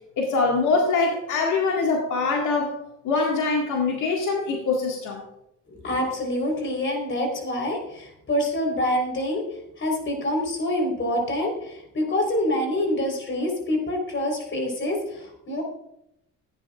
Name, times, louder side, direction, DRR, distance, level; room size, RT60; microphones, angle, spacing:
voice 1, 0.2-2.7 3.0-5.2, left 4 dB, 80° left, -1 dB, 1.9 m, -23 dB
voice 2, 5.7-9.4 9.8-15.6, left 1 dB, 40° left, 3 dB, 4.0 m, -26 dB
15.0 x 10.0 x 2.4 m, 0.82 s
cardioid pair, 90°, 30 cm